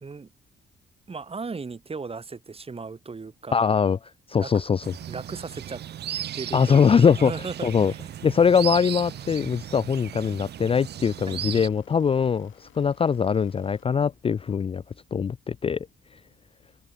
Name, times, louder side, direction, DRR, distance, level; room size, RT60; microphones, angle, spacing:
voice 1, 1.1-3.7 4.3-4.6 5.1-5.8 6.3-6.9 7.2-8.0 11.3-11.5, right 4 dB, 30° right, 3.0 m, -36 dB
voice 2, 3.5-4.0 4.3-4.9 6.5-7.3 7.6-7.9 8.2-14.8 15.1-15.9, left 6 dB, 30° left, 0.4 m, -22 dB
sound 1, 4.8-11.7, right 11 dB, 55° right, 0.7 m, -36 dB
sound 2, 8.3-15.2, left 12 dB, 75° left, 5.2 m, -59 dB
cardioid pair, 90°, 20 cm